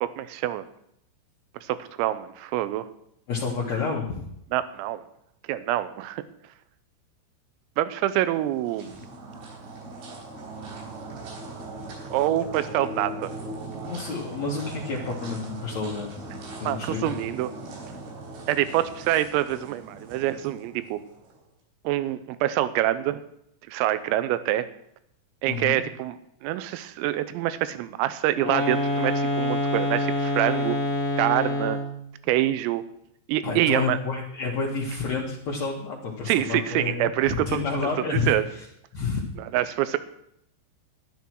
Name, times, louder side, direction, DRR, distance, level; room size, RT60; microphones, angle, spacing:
voice 1, 0.0-0.7 1.6-2.9 4.5-5.0 5.5-6.2 7.8-9.0 12.1-13.3 13.7-13.8 16.6-17.5 18.5-21.0 21.9-23.2 23.7-24.7 25.4-30.8 31.2-31.8 32.2-32.9 33.3-34.0 36.3-37.6 38.3-38.4 39.5-40.0, right 13 dB, 85° right, 13 dB, 3.4 m, -26 dB
voice 2, 3.3-4.2 13.8-16.3 16.6-17.2 25.5-25.8 33.4-38.6 38.9-39.2, left 4 dB, 75° left, -4 dB, 1.5 m, -30 dB
sound 1, 8.1-21.4, right 2 dB, 70° right, 6.2 m, -39 dB
sound 2, 28.3-32.0, left 1 dB, 40° left, 1.2 m, -26 dB
12.5 x 11.5 x 4.6 m, 0.74 s
omnidirectional pair, 6.0 m